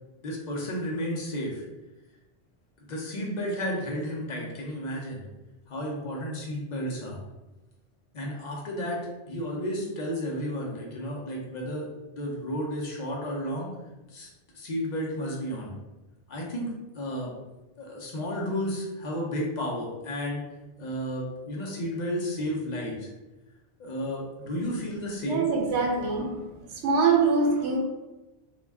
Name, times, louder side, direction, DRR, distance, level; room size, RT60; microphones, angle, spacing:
voice 1, 0.2-1.6 2.8-5.2 5.7-7.2 8.1-9.0 9.3-13.7 14.1-15.7 16.3-17.3 17.8-20.4 20.8-23.1 23.8-25.5, equal, 50° left, -2 dB, 0.6 m, -32 dB
voice 2, 25.2-27.8, right 4 dB, 85° right, 0 dB, 0.9 m, -24 dB
2.3 x 2.1 x 3.3 m, 1.1 s
omnidirectional pair, 1.1 m